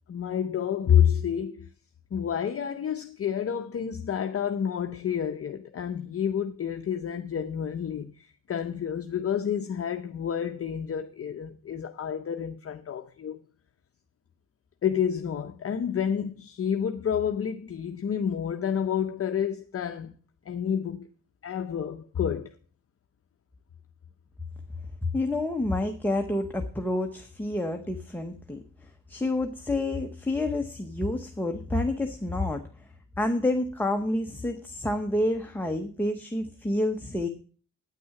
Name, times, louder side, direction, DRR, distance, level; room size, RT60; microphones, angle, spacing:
voice 1, 0.1-1.7 2.1-13.4 14.8-20.2 20.5-21.1 21.4-22.6, left 8 dB, 45° left, 0.7 m, -29 dB
voice 2, 25.1-32.7 33.2-37.3, left 1 dB, 5° left, 0.8 m, -29 dB
9.3 x 9.2 x 5.8 m
wide cardioid pair, 170°, 34 cm